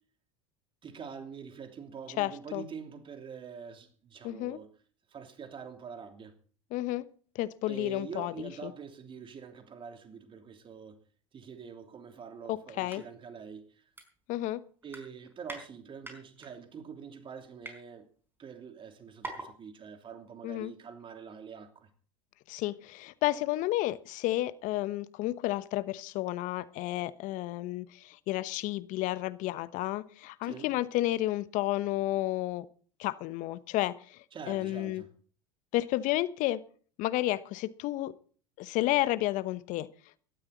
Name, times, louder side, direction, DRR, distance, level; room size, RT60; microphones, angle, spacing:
voice 1, 0.8-4.7 5.1-6.3 7.7-11.0 11.3-13.8 14.8-18.1 18.4-21.9 30.4-30.8 34.3-35.1, right 6 dB, 35° right, 3.0 m, -45 dB
voice 2, 2.2-2.6 4.2-4.6 6.7-7.1 7.3-8.7 12.5-13.0 14.3-14.6 20.4-20.7 22.5-32.7 33.0-35.0 35.7-36.6 37.0-38.1 38.6-39.9, left 16 dB, 55° left, 1.0 m, -31 dB
sound 1, 12.9-13.0 13.4-13.5 14.0-14.5 14.8-15.6 16.0-16.5 17.1-17.8 18.5-18.6 18.8-18.9 19.2-19.5 19.8-19.9, right 2 dB, 15° right, 4.8 m, -43 dB
17.5 x 12.5 x 4.0 m
hypercardioid pair, 85°, 16 cm